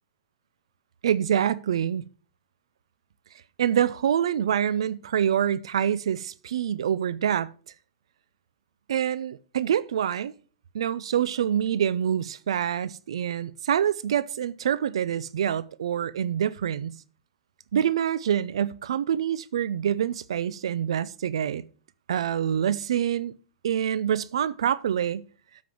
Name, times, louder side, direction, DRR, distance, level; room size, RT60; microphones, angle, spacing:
voice 1, 1.0-2.0 3.6-7.5 8.9-10.3 10.7-16.9 17.7-21.6 22.1-23.3 23.6-25.2, right 9 dB, 85° right, 0.5 m, -26 dB
7.8 x 5.2 x 7.5 m
hypercardioid pair, 135°, 3 cm